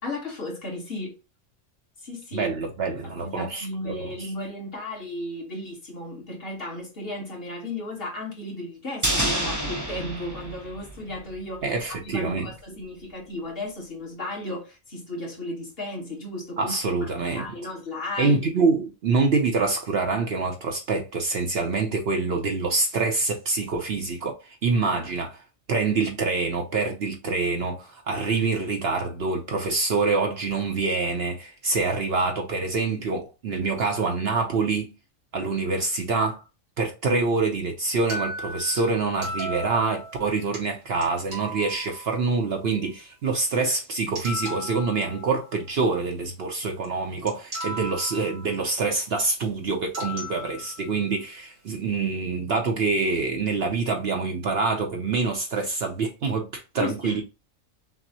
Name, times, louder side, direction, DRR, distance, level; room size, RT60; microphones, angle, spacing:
voice 1, 0.0-1.1 2.0-2.5 3.0-16.7 17.0-18.4 56.8-57.2, left 2 dB, 45° left, 1.5 m, -35 dB
voice 2, 2.3-4.3 11.6-12.5 16.6-17.5 18.2-25.4 25.7-34.9 35.3-36.4 36.8-57.2, right 4 dB, 55° right, 0.8 m, -26 dB
sound 1, 9.0-11.4 11.7-11.8, right 1 dB, 20° right, 0.5 m, -28 dB
sound 2, 38.1-40.6 41.0-41.1 41.3-42.4 43.8-43.9 44.2-45.7 46.8-46.9 47.3-48.6 49.9-51.0, equal, 85° right, 2.0 m, -36 dB
6.0 x 2.1 x 2.7 m
omnidirectional pair, 1.4 m